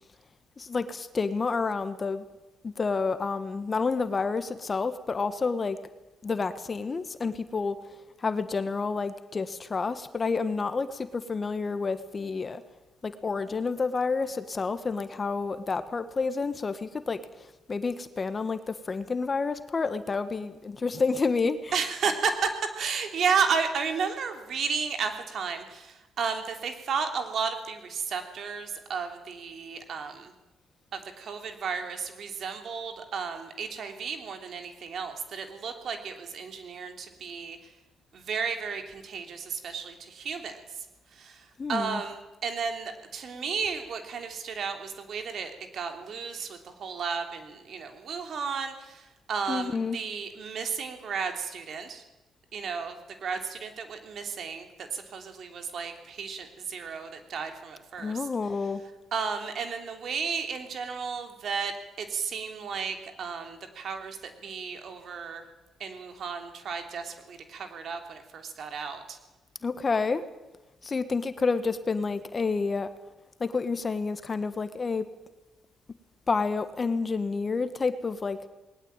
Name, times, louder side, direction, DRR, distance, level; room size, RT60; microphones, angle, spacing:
voice 1, 0.6-2.2 2.6-5.8 6.2-7.8 8.2-12.6 13.0-21.9 41.6-42.0 49.5-50.0 58.0-58.8 69.6-70.2 70.8-72.9 73.4-75.1 76.3-78.4, left 4 dB, 35° left, 11 dB, 1.5 m, -29 dB
voice 2, 21.7-22.5 22.7-30.3 30.9-37.6 38.1-40.6 41.1-52.0 52.5-58.2 59.1-65.4 65.8-69.2, right 6 dB, 60° right, 6 dB, 3.1 m, -33 dB
20.0 x 19.0 x 9.0 m, 1.1 s
cardioid pair, 90°, 0 cm